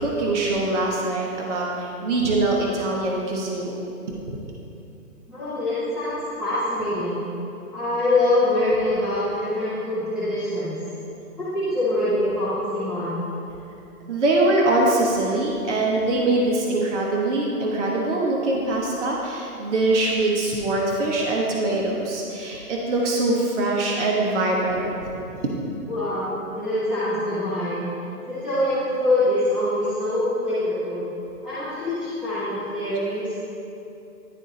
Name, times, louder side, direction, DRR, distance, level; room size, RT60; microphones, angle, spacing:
voice 1, 0.0-3.9 4.3-4.4 14.1-24.9, right 2 dB, 50° right, -2 dB, 1.1 m, -23 dB
voice 2, 5.3-7.2 7.7-10.7 11.3-13.2 25.9-27.8 28.3-31.1 31.4-33.4, left 1 dB, ahead, -15 dB, 0.8 m, -24 dB
10.5 x 3.8 x 4.0 m, 2.8 s
hypercardioid pair, 150°, 46 cm